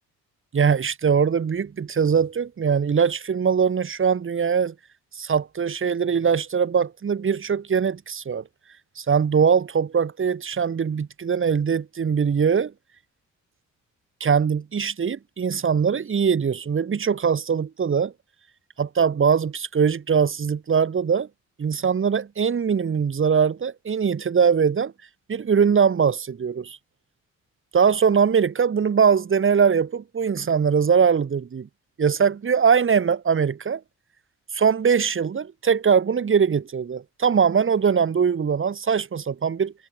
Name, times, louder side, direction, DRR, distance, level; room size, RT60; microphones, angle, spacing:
voice 1, 0.5-4.7 5.1-8.4 9.0-12.7 14.2-18.1 18.8-21.3 21.6-24.9 25.3-26.8 27.7-31.7 32.0-33.8 34.5-39.7, right 6 dB, 40° right, 4.2 m, -21 dB
cardioid pair, 90°, 30 cm